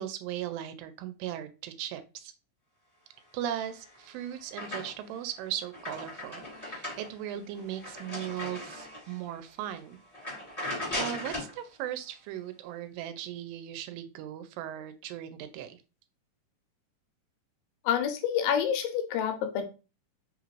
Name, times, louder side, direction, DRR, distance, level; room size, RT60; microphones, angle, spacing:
voice 1, 0.0-2.3 3.3-10.0 10.6-15.8, right 11 dB, 90° right, 9 dB, 2.3 m, -38 dB
sound 1, 3.6-5.2 5.6-9.2 9.6-9.8 10.1-11.6, left 1 dB, 10° left, 0.8 m, -38 dB
voice 2, 17.9-19.6, left 9 dB, 85° left, 6 dB, 2.3 m, -28 dB
5.2 x 2.5 x 3.1 m, 0.31 s
omnidirectional pair, 3.9 m